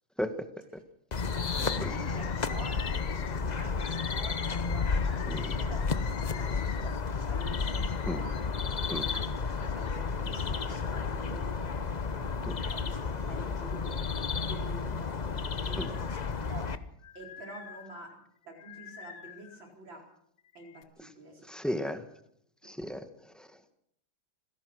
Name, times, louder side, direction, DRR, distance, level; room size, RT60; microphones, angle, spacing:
Bird, 1.1-10.0 10.6-11.6 12.1-13.1 13.5-14.9 15.4-19.7 20.4-20.8, left 8 dB, 75° left, 1.9 m, -48 dB
sound 1, 1.1-16.8, left 5 dB, 55° left, 0.4 m, -32 dB
voice 1, 1.6-8.6 9.1-12.1 12.4-16.7 17.1-20.0 20.5-21.8, right 2 dB, 75° right, 2 dB, 5.0 m, -48 dB
voice 2, 21.5-22.0 22.6-23.7, equal, ahead, 8 dB, 1.3 m, -35 dB
26.5 x 17.0 x 6.3 m, 0.72 s
omnidirectional pair, 2.1 m